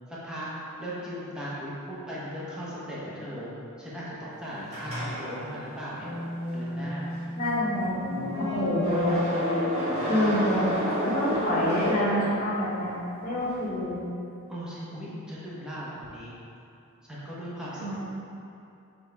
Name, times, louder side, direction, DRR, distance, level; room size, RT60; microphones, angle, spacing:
voice 1, 0.1-0.5 0.8-3.5 3.8-6.2 6.5-7.1 14.5-16.4 17.1-18.0, equal, 5° right, -9 dB, 1.0 m, -38 dB
sound 1, 4.7-12.8, equal, 30° right, 1.4 m, -30 dB
voice 2, 7.4-9.2 10.0-10.7 11.0-12.9 13.2-14.0 17.7-18.0, left 1 dB, 40° left, -7 dB, 1.5 m, -27 dB
7.0 x 3.9 x 3.4 m, 2.7 s
head